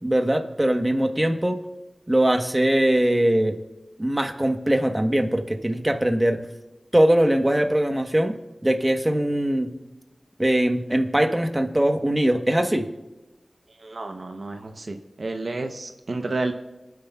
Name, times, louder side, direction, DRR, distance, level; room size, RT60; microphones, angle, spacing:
voice 1, 0.0-1.6 2.1-3.6 4.0-6.4 6.9-8.3 8.6-9.7 10.4-12.9, right 1 dB, 20° right, 5 dB, 1.1 m, -21 dB
voice 2, 13.8-16.5, right 2 dB, 70° right, 5 dB, 0.8 m, -31 dB
27.5 x 9.5 x 2.3 m, 1.0 s
wide cardioid pair, 50°, 0 cm